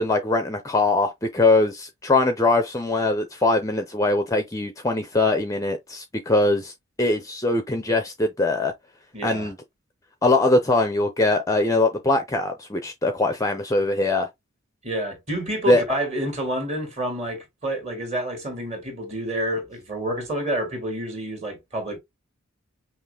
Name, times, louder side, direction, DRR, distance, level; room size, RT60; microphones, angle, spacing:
voice 1, 0.0-6.7 7.0-8.7 9.2-9.6 10.2-14.3 15.7-15.8, left 2 dB, 15° left, 0.6 m, -22 dB
voice 2, 9.1-9.5 14.8-22.0, right 1 dB, 30° right, 2.2 m, -28 dB
5.7 x 2.0 x 3.4 m
head